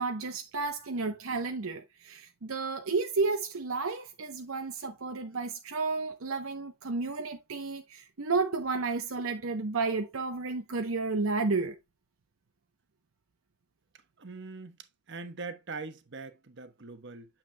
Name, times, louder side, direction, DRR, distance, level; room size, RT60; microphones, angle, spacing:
voice 1, 0.0-11.8, right 4 dB, 80° right, 0.8 m, -32 dB
voice 2, 14.2-14.8 15.1-17.3, right 3 dB, 60° right, 1.1 m, -42 dB
8.9 x 7.3 x 2.2 m
head